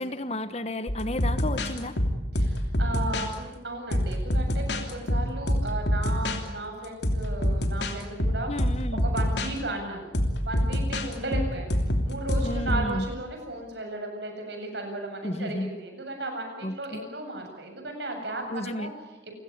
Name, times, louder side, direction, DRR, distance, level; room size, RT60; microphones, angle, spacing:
voice 1, 0.0-2.0 8.5-9.0 12.4-13.1 15.2-15.7 16.6-17.0 18.5-18.9, left 1 dB, 35° left, 12 dB, 1.3 m, -32 dB
sound 1, 0.9-3.3 3.9-6.4 6.8-9.5 10.1-12.9, equal, 65° left, 3.0 m, -26 dB
voice 2, 2.3-8.5 9.0-10.0 10.4-11.8 12.0-18.9, right 2 dB, 70° right, 3 dB, 7.8 m, -35 dB
29.0 x 16.5 x 9.7 m, 0.99 s
head